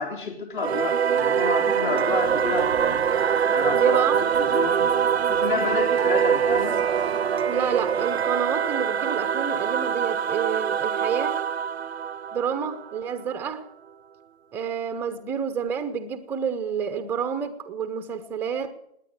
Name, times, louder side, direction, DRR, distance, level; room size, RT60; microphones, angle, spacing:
voice 1, 0.0-3.0 3.5-4.0 4.4-4.9 5.3-6.8, left 4 dB, 50° left, 3 dB, 4.0 m, -30 dB
Singing / Musical instrument, 0.6-13.5, right 8 dB, 70° right, 0.6 m, -24 dB
Train, 2.1-8.8, left 2 dB, 75° left, 2.3 m, -42 dB
voice 2, 3.7-4.2 7.4-11.4 12.3-13.7 14.5-18.7, right 7 dB, 5° right, 10 dB, 0.7 m, -28 dB
18.5 x 9.6 x 8.1 m, 0.75 s
figure-of-eight pair, 135°, 33 cm